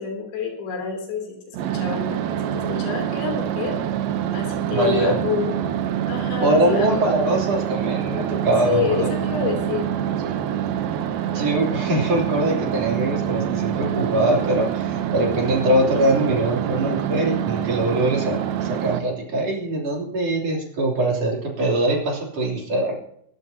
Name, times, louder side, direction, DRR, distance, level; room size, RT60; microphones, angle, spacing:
voice 1, 0.0-3.8 4.3-5.5 6.1-7.1 8.6-9.8, left 6 dB, 80° left, 1 dB, 5.4 m, -28 dB
sound 1, 1.5-19.0, right 10 dB, 70° right, 2.4 m, -26 dB
voice 2, 4.7-5.2 6.4-9.1 11.3-22.9, right 1 dB, 40° right, -2 dB, 3.9 m, -22 dB
23.5 x 12.5 x 2.8 m, 0.72 s
omnidirectional pair, 4.9 m